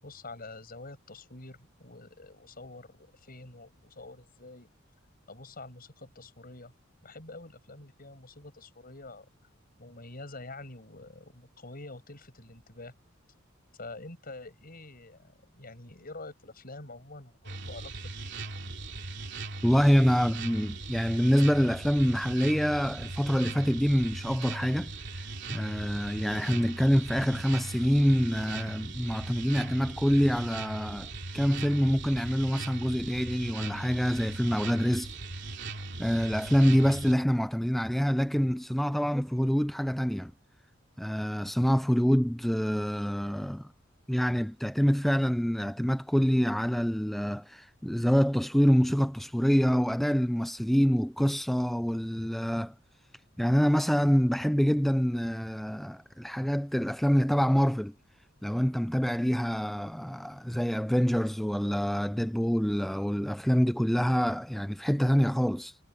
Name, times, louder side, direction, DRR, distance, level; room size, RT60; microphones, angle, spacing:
voice 1, 0.0-4.7 5.3-6.7 7.0-9.3 9.8-12.9 13.7-18.3, left 2 dB, 50° left, 7.7 m, -46 dB
sound 1, 17.4-37.1, right 3 dB, 65° right, 2.9 m, -39 dB
voice 2, 19.6-35.1 36.0-40.3 41.0-43.7 44.1-52.7 53.4-57.9 58.4-65.8, equal, ahead, 0.3 m, -26 dB
head